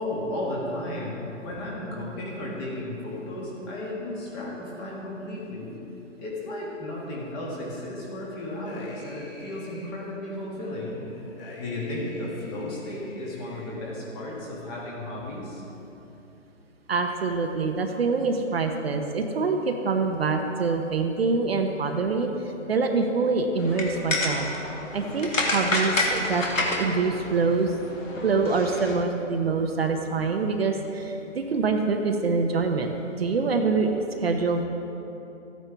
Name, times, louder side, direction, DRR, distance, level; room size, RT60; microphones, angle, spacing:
voice 1, 0.0-5.7 6.2-11.0 11.6-15.6, left 1 dB, 20° left, -4 dB, 1.6 m, -34 dB
sound 1, 8.4-9.9 10.5-13.7, left 2 dB, 45° left, 2.5 m, -46 dB
voice 2, 16.9-22.3 22.7-24.5 24.9-26.4 26.8-27.7 28.2-34.6, right 4 dB, 50° right, 4 dB, 0.9 m, -25 dB
sound 2, 23.6-28.9, left 2 dB, 90° left, 2.1 m, -29 dB
14.0 x 9.1 x 3.4 m, 2.9 s
hypercardioid pair, 160°, 38 cm